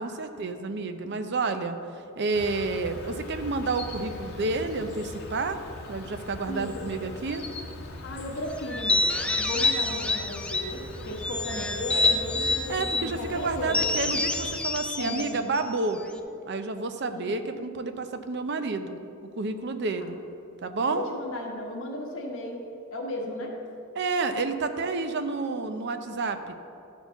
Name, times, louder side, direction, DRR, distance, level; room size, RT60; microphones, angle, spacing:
voice 1, 0.0-1.8 2.2-5.6 5.9-7.4 12.7-16.0 16.5-19.0 19.4-20.2 20.6-21.0 23.9-26.5, right 3 dB, 55° right, 8 dB, 0.6 m, -30 dB
Insect, 2.3-14.6, left 2 dB, 55° left, 1.8 m, -40 dB
voice 2, 6.5-6.8 8.0-13.9 15.0-15.3 17.1-17.3 20.0-20.1 20.8-22.6 22.9-23.5, left 1 dB, 75° left, -1 dB, 1.3 m, -35 dB
sound 1, 8.7-10.8 11.2-13.1 13.7-16.2, left 2 dB, 5° left, 0.5 m, -27 dB
12.5 x 4.4 x 7.0 m, 2.6 s
head